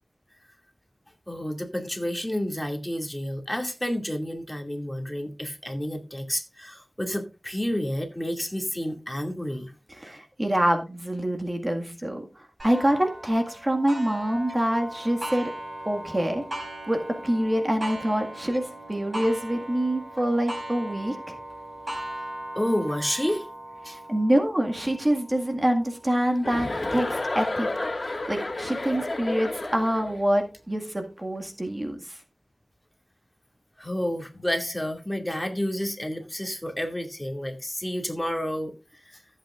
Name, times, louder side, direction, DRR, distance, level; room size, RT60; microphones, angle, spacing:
voice 1, 1.3-9.7 22.5-23.5 23.8-24.0 33.8-38.7 39.0-39.2, equal, 10° left, 3 dB, 2.4 m, -30 dB
voice 2, 9.9-15.5 15.9-16.4 16.9-21.4 23.9-32.2, right 1 dB, 30° right, 3 dB, 1.9 m, -26 dB
Clock, 12.6-27.9 28.5-28.6 29.1-29.2 30.2-30.3, right 1 dB, 50° right, 6.3 m, -39 dB
Chuckle chortle, 26.4-30.2, left 2 dB, 50° left, 2.1 m, -31 dB
15.0 x 8.4 x 2.5 m, 0.29 s
wide cardioid pair, 60°, 0 cm